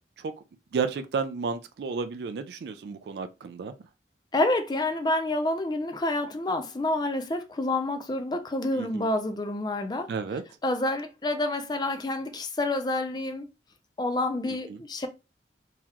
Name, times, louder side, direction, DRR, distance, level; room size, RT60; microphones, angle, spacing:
voice 1, 0.7-3.7 8.8-9.1 10.1-10.4 14.7-14.8, right 5 dB, 65° right, 0.3 m, -32 dB
voice 2, 4.3-10.1 10.6-13.5 14.0-15.1, left 2 dB, 25° left, 0.5 m, -28 dB
3.8 x 2.9 x 2.9 m
head